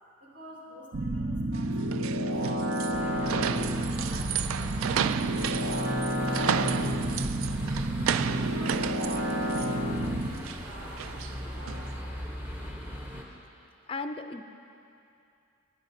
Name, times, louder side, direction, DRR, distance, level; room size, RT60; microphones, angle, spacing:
voice 1, 0.2-2.3 2.9-7.4 8.0-11.9, equal, 45° right, -6 dB, 2.9 m, -48 dB
sound 1, 0.9-10.3, right 1 dB, 75° right, 0.8 m, -30 dB
sound 2, 1.5-11.9, right 8 dB, 90° right, 0.3 m, -33 dB
sound 3, 2.9-13.2, equal, 10° right, 1.0 m, -38 dB
voice 2, 13.9-14.4, left 3 dB, 25° left, 7 dB, 0.4 m, -35 dB
19.0 x 10.0 x 2.7 m, 2.6 s
head